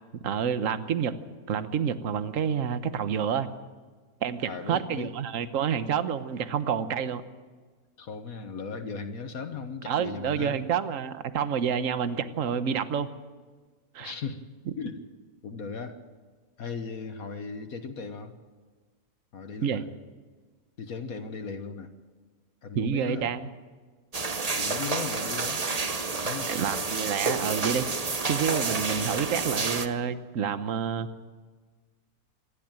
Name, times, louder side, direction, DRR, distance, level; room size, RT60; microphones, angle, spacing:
voice 1, 0.2-1.1 1.5-3.5 4.2-7.2 9.9-13.1 13.9-14.1 19.6-19.8 22.7-23.5 26.5-27.9 28.3-31.1, right 7 dB, 60° right, 11 dB, 1.3 m, -28 dB
voice 2, 4.5-5.1 8.0-10.6 14.0-14.4 14.8-15.0 15.4-16.0 16.6-18.3 19.3-19.8 20.8-21.9 22.6-23.3 24.6-25.6 26.2-26.5 29.0-29.3, left 5 dB, 70° left, 7 dB, 1.6 m, -37 dB
sound 1, 24.1-29.9, right 4 dB, 30° right, 1.0 m, -29 dB
26.5 x 12.0 x 8.9 m, 1.4 s
omnidirectional pair, 1.6 m